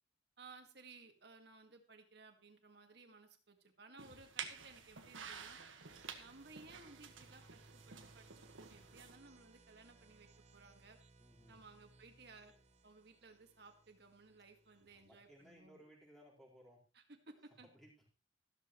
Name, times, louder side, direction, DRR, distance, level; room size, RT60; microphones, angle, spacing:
voice 1, 0.4-5.6 6.2-11.0 11.5-12.5 12.8-15.8 16.9-17.7, right 3 dB, 55° right, 5 dB, 2.0 m, -59 dB
sound 1, 4.0-9.2, right 6 dB, 90° right, 1.6 m, -51 dB
sound 2, 5.9-15.6, right 3 dB, 35° right, 1.0 m, -65 dB
voice 2, 11.2-11.6 14.8-16.8 17.6-18.1, equal, ahead, -4 dB, 4.4 m, -62 dB
14.0 x 13.0 x 3.1 m, 0.36 s
head